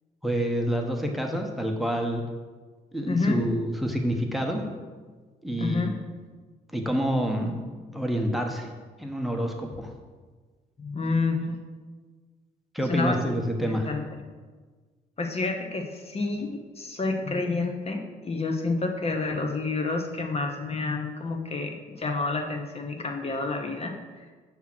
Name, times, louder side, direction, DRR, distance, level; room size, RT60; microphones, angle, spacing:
voice 1, 0.2-2.2 2.9-4.6 5.4-5.9 6.7-7.6 7.9-8.7 9.0-9.9 12.7-13.9, equal, ahead, 2 dB, 0.9 m, -27 dB
voice 2, 3.0-3.4 5.5-5.9 10.8-11.6 12.9-13.2 13.9-14.2 15.2-24.3, left 3 dB, 35° left, 3 dB, 0.8 m, -29 dB
6.0 x 3.6 x 6.0 m, 1.4 s
supercardioid pair, 70°, 17 cm